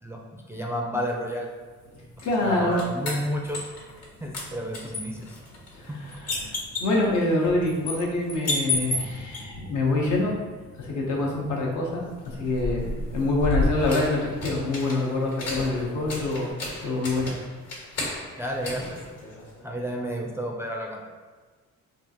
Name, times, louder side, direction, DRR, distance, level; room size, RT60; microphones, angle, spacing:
voice 1, 0.0-1.5 2.4-3.6 4.2-5.4 5.9-6.0 18.4-19.0 19.6-21.0, equal, 10° right, -1 dB, 0.3 m, -31 dB
sound 1, 1.0-16.5, left 2 dB, 90° left, 1.3 m, -38 dB
voice 2, 2.2-2.8 5.7-10.3 10.8-16.5 16.8-17.4 17.9-18.0, left 2 dB, 75° left, -2 dB, 0.8 m, -26 dB
sound 2, 2.2-4.1 4.3-9.4 12.2-19.7, left 2 dB, 55° left, 1.1 m, -34 dB
3.5 x 2.4 x 2.7 m, 1.4 s
cardioid pair, 90°, 30 cm